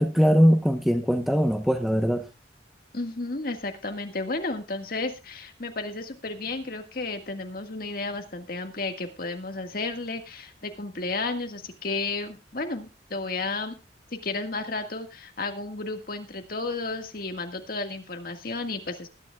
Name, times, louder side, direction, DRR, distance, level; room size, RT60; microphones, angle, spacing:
voice 1, 0.0-2.3, equal, ahead, 0.9 m, -21 dB
voice 2, 2.9-13.7 14.1-19.1, left 3 dB, 55° left, 1.7 m, -32 dB
20.0 x 10.0 x 2.3 m
head